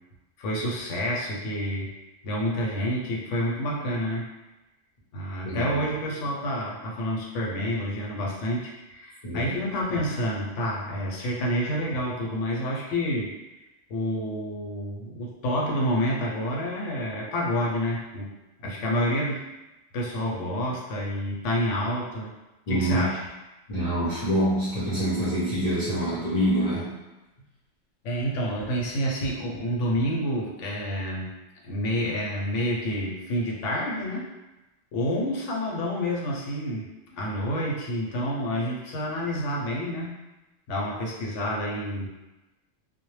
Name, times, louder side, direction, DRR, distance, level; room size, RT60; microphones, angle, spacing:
voice 1, 0.4-1.9 2.2-4.3 5.1-13.3 13.9-18.3 18.6-19.4 19.9-22.3 22.7-23.3 28.0-31.3 31.6-34.3 34.9-40.1 40.7-42.1, equal, 75° left, -3 dB, 0.9 m, -28 dB
voice 2, 5.5-5.9 9.2-9.5 22.7-23.1 23.7-26.9, right 1 dB, 45° left, -11 dB, 0.6 m, -26 dB
2.1 x 2.0 x 3.1 m, 1.0 s
omnidirectional pair, 1.3 m